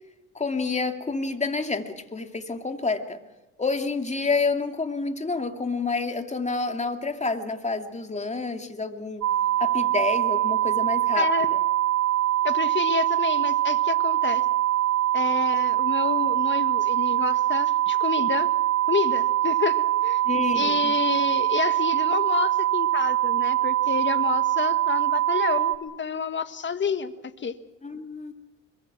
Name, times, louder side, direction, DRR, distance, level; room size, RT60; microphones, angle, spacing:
voice 1, 0.3-3.2 3.6-9.3 9.6-11.6 20.2-20.9 27.8-28.3, left 4 dB, 25° left, 6 dB, 2.6 m, -29 dB
sound 1, 9.2-25.8, right 14 dB, 75° right, 2.2 m, -23 dB
voice 2, 11.2-11.5 12.4-14.4 15.1-18.5 18.9-20.2 20.5-27.1 27.4-27.6, left 6 dB, 40° left, 11 dB, 1.6 m, -29 dB
26.0 x 23.5 x 6.1 m, 0.99 s
cardioid pair, 90°, 30 cm